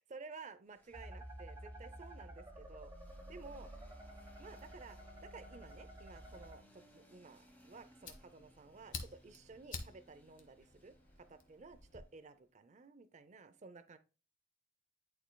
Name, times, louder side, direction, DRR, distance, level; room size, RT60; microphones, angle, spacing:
voice 1, 0.1-2.9 3.3-3.7 4.4-14.0, right 4 dB, 35° right, 11 dB, 0.5 m, -54 dB
sound 1, 0.7-12.4, left 1 dB, 10° left, 1.3 m, -65 dB
sound 2, 0.9-6.5, right 1 dB, 15° right, 1.0 m, -51 dB
Fire, 7.4-12.0, left 4 dB, 40° left, 1.2 m, -51 dB
11.0 x 4.4 x 2.2 m, 0.33 s
head